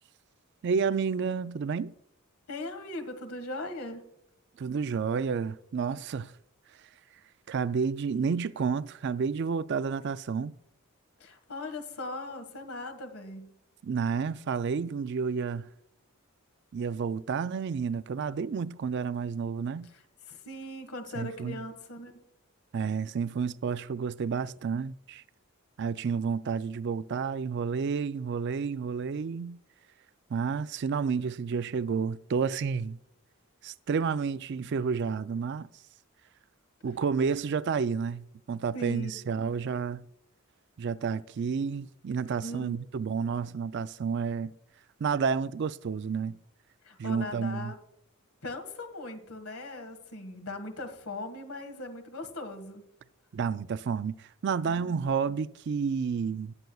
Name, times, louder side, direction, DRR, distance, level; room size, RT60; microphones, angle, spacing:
voice 1, 0.6-1.9 4.6-6.3 7.5-10.5 13.8-15.7 16.7-19.9 21.2-21.6 22.7-25.2 25.8-29.6 30.3-33.0 33.6-35.7 36.8-40.0 40.8-44.5 45.0-46.4 47.0-47.7 53.3-56.5, right 5 dB, 55° right, 0.4 m, -30 dB
voice 2, 2.5-4.0 11.2-13.5 19.8-22.2 38.7-39.3 42.4-42.8 46.8-47.8 48.4-52.8 54.7-55.0 55.3-55.4, left 1 dB, 85° left, 1.7 m, -39 dB
19.5 x 7.9 x 2.3 m
head